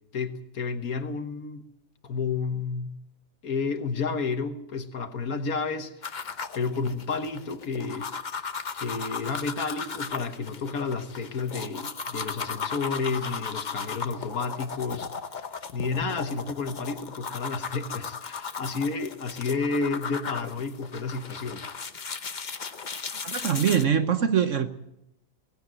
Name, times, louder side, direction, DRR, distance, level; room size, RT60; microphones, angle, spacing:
voice 1, 0.1-1.7 2.0-3.0 3.4-6.3 6.5-8.1 8.7-15.1 15.7-21.7, left 4 dB, 60° left, 1.7 m, -31 dB
sound 1, 6.0-23.8, left 5 dB, 35° left, 0.8 m, -36 dB
voice 2, 23.2-24.7, right 8 dB, 50° right, 1.2 m, -23 dB
18.0 x 16.0 x 9.0 m
omnidirectional pair, 1.8 m